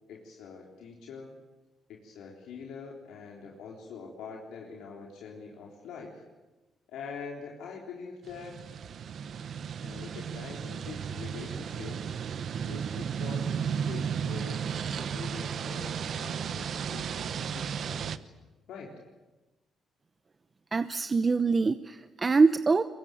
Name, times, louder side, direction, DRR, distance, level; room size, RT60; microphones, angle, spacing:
voice 1, 0.1-1.3 1.9-6.2 6.9-8.6 9.8-12.0 12.6-18.2 18.7-18.9, left 5 dB, 85° left, -1 dB, 3.7 m, -44 dB
sound 1, 8.2-18.2, right 7 dB, 60° right, 1.0 m, -34 dB
voice 2, 20.7-22.8, right 4 dB, 30° right, 11 dB, 0.8 m, -24 dB
23.5 x 21.5 x 9.1 m, 1.1 s
cardioid pair, 90°, 0 cm